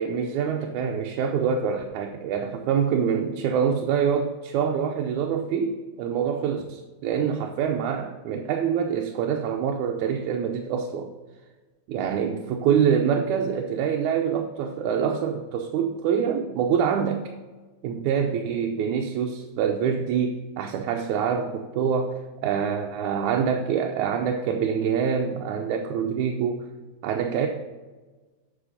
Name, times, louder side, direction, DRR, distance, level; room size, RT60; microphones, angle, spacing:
voice 1, 0.0-11.1 11.9-17.3 17.8-26.6 27.0-27.5, right 7 dB, 80° right, 2 dB, 2.1 m, -25 dB
8.4 x 5.7 x 5.0 m, 1.3 s
omnidirectional pair, 3.4 m